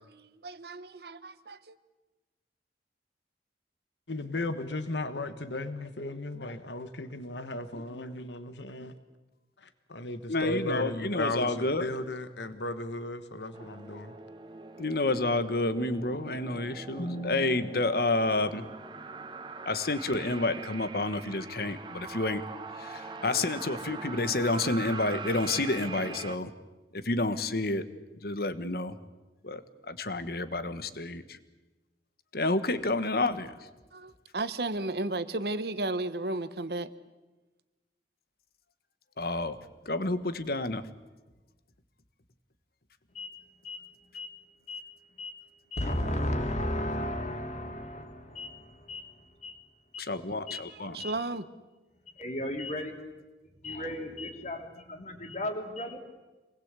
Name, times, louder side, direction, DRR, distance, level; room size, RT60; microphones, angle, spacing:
voice 1, 0.4-1.7 33.9-36.9 50.3-51.4, right 2 dB, 60° right, 1.1 m, -34 dB
voice 2, 4.1-8.9 9.6-14.2, left 2 dB, 85° left, 1.4 m, -36 dB
voice 3, 10.3-11.9 14.8-18.7 19.6-22.5 22.8-26.5 26.9-27.8 28.2-29.0 29.4-29.6 29.9-31.4 32.3-33.5 39.2-39.6 39.8-40.8 50.0-51.0, left 2 dB, 60° left, 1.4 m, -29 dB
sound 1, 13.5-26.4, right 4 dB, 25° right, 1.0 m, -42 dB
voice 4, 43.1-43.9 44.1-44.4 44.7-44.9 45.2-45.4 45.7-48.6 48.9-49.1 49.4-49.6 49.9-50.0 50.5-50.7 51.0-51.2 52.0-52.9 53.6-56.0, left 1 dB, 40° left, 3.2 m, -35 dB
27.0 x 20.0 x 8.3 m
head